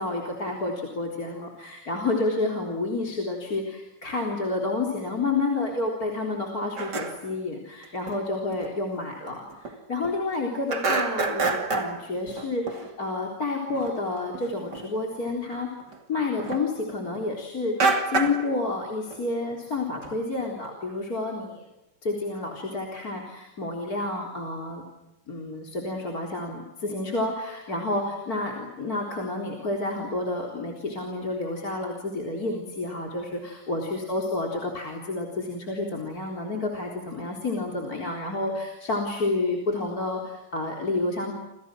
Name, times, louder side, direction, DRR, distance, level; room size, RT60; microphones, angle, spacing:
voice 1, 0.0-15.7 16.1-17.8 18.1-21.7 22.0-24.8 25.3-41.3, left 2 dB, 25° left, 0 dB, 4.0 m, -30 dB
sound 1, 6.8-7.3 8.1-8.2 8.5-8.7 9.1-9.2 9.5-10.4 10.7-12.9 13.7-13.9 14.3-14.9 15.3-17.2 17.8-18.5 18.9-19.2 19.5-19.6 19.9-20.7, right 3 dB, 30° right, 2.7 m, -28 dB
29.0 x 29.0 x 6.3 m, 0.96 s
omnidirectional pair, 4.3 m